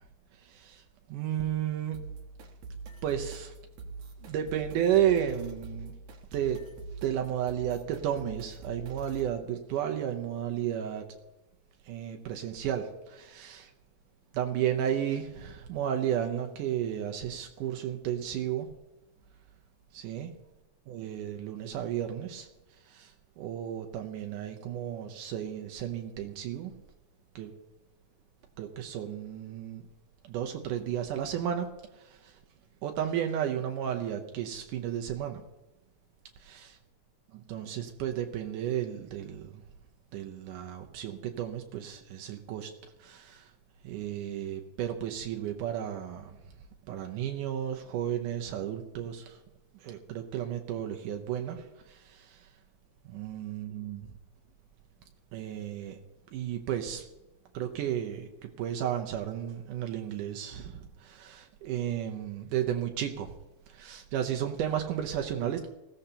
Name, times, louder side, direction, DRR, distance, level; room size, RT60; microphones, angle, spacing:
voice 1, 0.3-2.1 3.0-3.6 4.2-5.9 6.3-6.7 7.0-11.2 11.8-13.7 14.3-18.7 19.9-20.4 20.9-26.7 27.4-27.5 28.6-29.9 30.2-32.4 32.8-35.4 36.4-36.8 37.3-39.6 40.1-42.7 43.0-43.5 43.8-46.4 46.9-49.4 49.7-52.5 53.0-54.2 55.3-56.0 56.3-57.1 57.5-63.3 63.7-65.7, right 10 dB, 80° right, 4 dB, 2.4 m, -33 dB
sound 1, 1.9-9.3, right 4 dB, 60° right, 2.2 m, -43 dB
20.0 x 15.0 x 2.9 m, 0.99 s
omnidirectional pair, 3.6 m